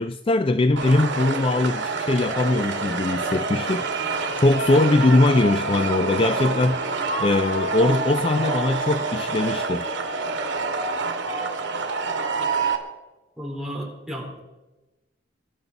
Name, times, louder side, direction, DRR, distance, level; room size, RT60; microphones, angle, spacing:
voice 1, 0.0-3.9 4.4-6.8 7.2-9.9, left 2 dB, 30° left, 0.4 m, -21 dB
sound 1, 0.8-12.8, right 3 dB, 80° right, 2.3 m, -27 dB
voice 2, 13.4-14.4, equal, 5° right, 4.2 m, -33 dB
23.0 x 12.0 x 4.1 m
head